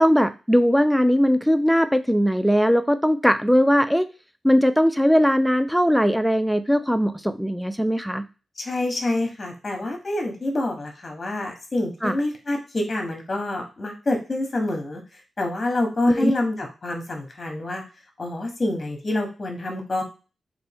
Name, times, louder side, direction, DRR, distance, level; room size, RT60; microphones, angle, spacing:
voice 1, 0.0-4.1 4.4-8.2 12.0-12.2 16.1-16.3, equal, ahead, 10 dB, 0.4 m, -19 dB
voice 2, 8.6-17.8 18.2-20.0, left 2 dB, 40° left, 3 dB, 0.9 m, -27 dB
3.3 x 2.5 x 3.4 m, 0.31 s
cardioid pair, 70°, 0 cm